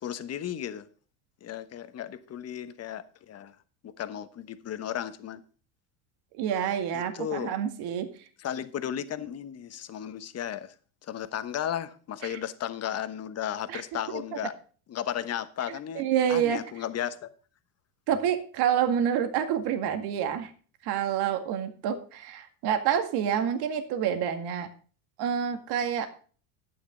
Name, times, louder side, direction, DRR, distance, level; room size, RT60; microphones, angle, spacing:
voice 1, 0.0-0.9 1.4-3.5 3.8-5.4 6.9-7.5 8.4-10.7 11.0-14.5 14.9-17.3, left 10 dB, 35° left, 1.2 m, -35 dB
voice 2, 6.3-8.1 12.2-12.4 13.7-13.8 14.1-14.2 16.0-16.6 18.1-20.5 20.8-24.7 25.2-26.1, right 9 dB, 60° right, 2.1 m, -28 dB
11.5 x 9.3 x 3.8 m
supercardioid pair, 100°, 43 cm